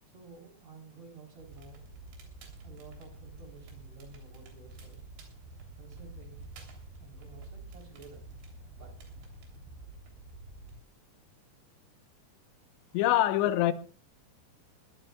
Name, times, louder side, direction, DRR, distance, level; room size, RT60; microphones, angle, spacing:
voice 1, 0.1-1.8 2.6-5.0 5.8-6.5 7.0-8.3 8.8-9.0, right 4 dB, 40° right, 4.7 m, -52 dB
Crackle, 1.4-10.8, right 2 dB, 85° right, 5.6 m, -48 dB
voice 2, 12.9-13.7, left 13 dB, 85° left, 3.3 m, -24 dB
21.5 x 17.0 x 2.3 m
omnidirectional pair, 5.1 m